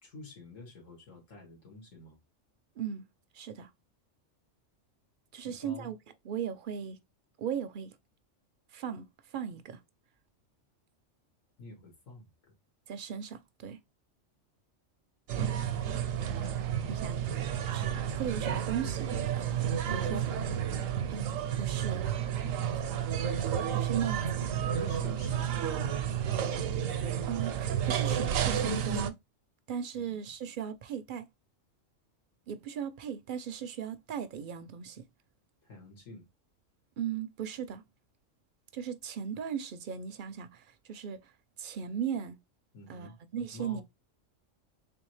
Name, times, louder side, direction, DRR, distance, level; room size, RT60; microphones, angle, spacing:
voice 1, 0.0-2.2 5.4-5.9 11.6-12.3 16.9-17.3 19.9-20.4 22.7-23.1 24.7-27.5 29.9-30.3 35.6-36.3 42.7-43.2 43.5-43.8, left 3 dB, 85° left, 2.0 m, -48 dB
voice 2, 2.8-3.1 3.3-3.7 5.3-6.0 6.2-7.0 7.4-7.9 8.7-9.1 9.3-9.8 12.9-13.8 16.9-17.2 17.6-20.2 21.1-22.0 23.7-24.4 27.3-29.1 29.7-31.3 32.5-35.0 37.0-37.8 38.7-41.3 41.6-42.4 42.9-43.8, right 8 dB, 60° right, 0.5 m, -37 dB
sound 1, 15.3-29.1, right 9 dB, 90° right, 1.0 m, -31 dB
3.4 x 3.4 x 3.1 m
omnidirectional pair, 1.3 m